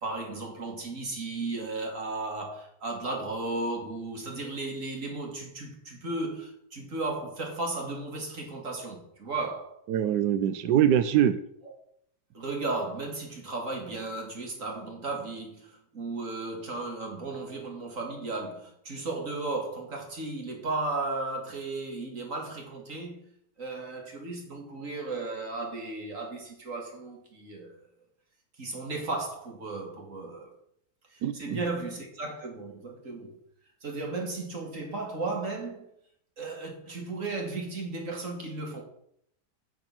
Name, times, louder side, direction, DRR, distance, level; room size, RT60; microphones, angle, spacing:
voice 1, 0.0-9.8 12.3-23.3 23.6-27.8 28.6-30.5 31.1-33.4 33.8-35.9 36.4-38.8, right 3 dB, 50° right, 2.6 m, -35 dB
voice 2, 9.9-11.4 31.2-31.6, right 10 dB, 85° right, 1.2 m, -23 dB
9.9 x 6.2 x 6.1 m
omnidirectional pair, 1.8 m